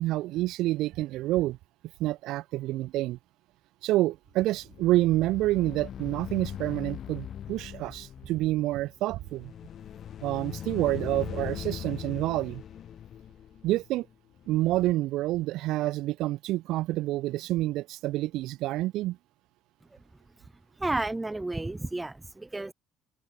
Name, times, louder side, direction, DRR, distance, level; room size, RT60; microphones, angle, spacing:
voice 1, 0.0-1.6 2.0-3.2 3.8-9.5 10.2-12.6 13.6-14.1 14.5-19.2, right 16 dB, 75° right, 0.6 m, -28 dB
sound 1, 4.6-14.9, left 9 dB, 45° left, 0.9 m, -40 dB
voice 2, 20.8-22.7, right 2 dB, 10° right, 1.5 m, -31 dB
open air
cardioid pair, 140°, 0 cm